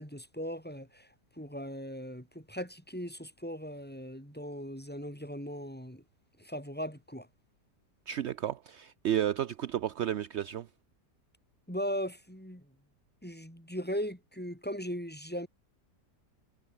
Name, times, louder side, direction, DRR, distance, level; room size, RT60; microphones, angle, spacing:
voice 1, 0.0-6.0 6.4-7.3 11.7-12.7 13.2-15.5, equal, 5° left, 6.9 m, -38 dB
voice 2, 8.1-10.7, right 11 dB, 65° right, 0.7 m, -32 dB
omnidirectional pair, 1.8 m